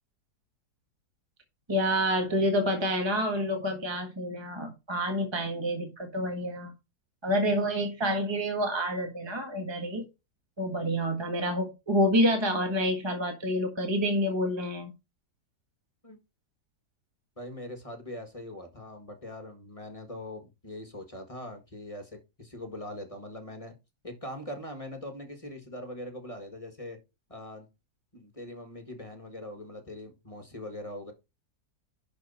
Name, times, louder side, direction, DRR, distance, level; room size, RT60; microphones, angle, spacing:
voice 1, 1.7-6.7 7.2-10.0 10.6-14.9, equal, 15° right, 1.5 m, -28 dB
voice 2, 17.4-23.8 24.0-27.0 27.3-27.7 28.1-31.1, left 1 dB, 20° left, 1.5 m, -42 dB
11.5 x 4.5 x 4.2 m
omnidirectional pair, 2.1 m